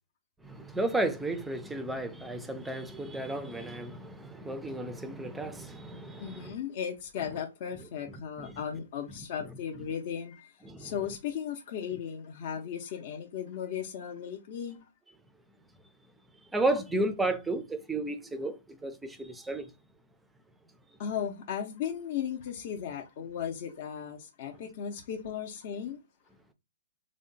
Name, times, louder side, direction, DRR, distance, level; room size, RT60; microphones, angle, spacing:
voice 1, 0.4-6.5 8.4-8.5 10.7-10.9 16.5-19.7, right 2 dB, 5° right, 0.4 m, -33 dB
voice 2, 6.2-14.8 21.0-26.0, left 8 dB, 40° left, 0.6 m, -36 dB
3.5 x 2.1 x 3.9 m
hypercardioid pair, 155°, 0 cm